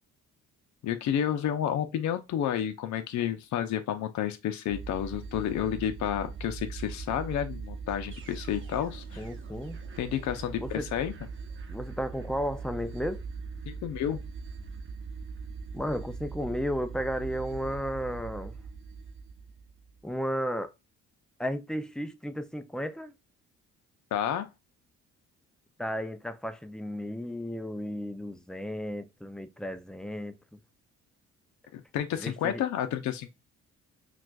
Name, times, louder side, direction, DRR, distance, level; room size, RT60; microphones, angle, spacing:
voice 1, 0.8-9.3 10.0-11.1 13.7-14.2 24.1-24.5 31.7-33.3, left 10 dB, 70° left, 0.6 m, -30 dB
sound 1, 4.7-20.0, right 5 dB, 40° right, 0.8 m, -41 dB
voice 2, 9.2-9.8 10.6-10.9 11.7-13.2 15.7-18.6 20.0-20.7 21.4-23.1 25.8-30.6 32.2-32.6, equal, ahead, 0.4 m, -34 dB
5.9 x 2.4 x 2.3 m
cardioid pair, 90°, 30 cm